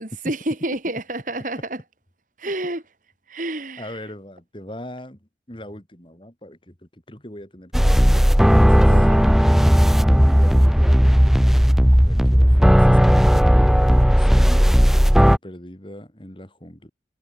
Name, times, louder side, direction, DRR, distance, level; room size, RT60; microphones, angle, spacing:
voice 1, 0.0-1.8 2.4-2.8 3.3-3.9 8.9-9.4, right 1 dB, 45° right, 2.8 m, -29 dB
voice 2, 3.8-5.2 5.5-9.1 10.6-11.3 11.9-16.9, left 1 dB, 25° left, 3.7 m, -40 dB
sound 1, 7.7-15.4, equal, ahead, 0.8 m, -15 dB
head